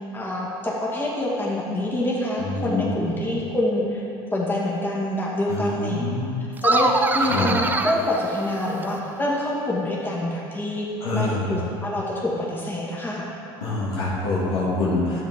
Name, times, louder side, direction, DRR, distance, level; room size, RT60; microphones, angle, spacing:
voice 1, 0.1-4.0 4.3-6.0 6.6-10.9 11.1-13.3, left 1 dB, 15° left, -4 dB, 2.0 m, -26 dB
voice 2, 2.4-3.0 5.5-6.3 7.2-7.5 11.0-11.5 13.6-15.2, left 2 dB, 80° left, -5 dB, 2.2 m, -25 dB
sound 1, 6.6-9.1, right 2 dB, 15° right, 0.5 m, -24 dB
10.0 x 7.2 x 3.7 m, 2.7 s
hypercardioid pair, 80°, 12 cm